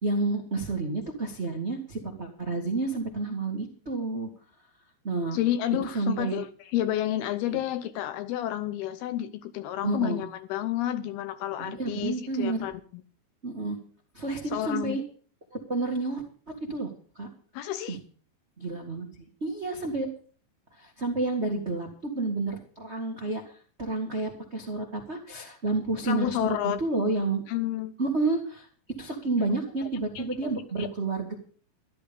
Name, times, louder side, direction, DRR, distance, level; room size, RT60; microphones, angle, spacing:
voice 1, 0.0-4.3 5.0-5.4 5.9-6.4 7.5-7.6 9.8-10.2 11.6-12.7 13.4-13.8 14.1-15.0 15.7-16.2 16.7-16.9 17.1-17.3 17.9-18.0 18.6-20.1 20.8-23.4 23.8-27.4 28.0-28.7 29.0-31.3, right 3 dB, 85° right, 1 dB, 0.6 m, -30 dB
voice 2, 5.3-12.8 14.5-15.0 17.5-18.0 26.1-26.8 27.5-27.9 29.8-29.9 30.2-30.9, left 12 dB, 80° left, 12 dB, 2.4 m, -30 dB
13.5 x 12.0 x 5.3 m, 0.44 s
omnidirectional pair, 5.1 m